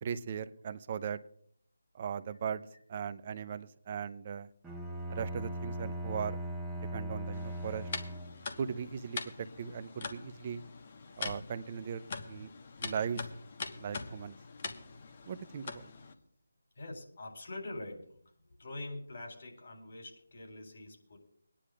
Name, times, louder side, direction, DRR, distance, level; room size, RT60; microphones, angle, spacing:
voice 1, 0.0-1.2 1.9-4.5 5.1-6.4 6.8-7.9 8.6-10.6 11.2-12.5 12.8-13.3 13.8-14.4 15.3-15.9, right 7 dB, 35° right, 13 dB, 0.6 m, -38 dB
Bowed string instrument, 4.6-8.6, right 1 dB, 5° right, 1.0 m, -39 dB
sound 1, 7.3-16.1, left 4 dB, 40° left, 1.3 m, -43 dB
voice 2, 16.8-18.2 18.5-21.2, left 2 dB, 55° left, 1 dB, 3.8 m, -44 dB
24.0 x 10.0 x 2.5 m, 0.64 s
figure-of-eight pair, 155°, 0 cm